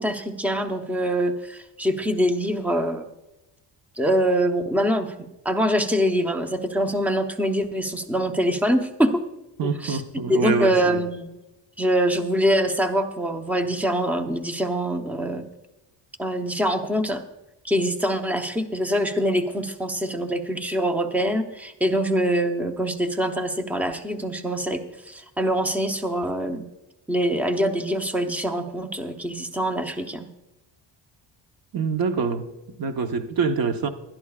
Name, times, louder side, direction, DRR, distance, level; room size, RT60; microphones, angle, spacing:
voice 1, 0.0-3.1 4.0-5.1 5.4-9.2 9.6-10.0 10.3-11.3 11.8-15.4 16.2-17.2 17.6-26.6 27.1-30.3, equal, 5° right, 6 dB, 0.7 m, -24 dB
voice 2, 9.6-11.0 31.7-32.5 32.8-33.9, right 5 dB, 50° right, 7 dB, 1.1 m, -25 dB
20.5 x 12.0 x 2.4 m, 0.97 s
cardioid pair, 140°, 46 cm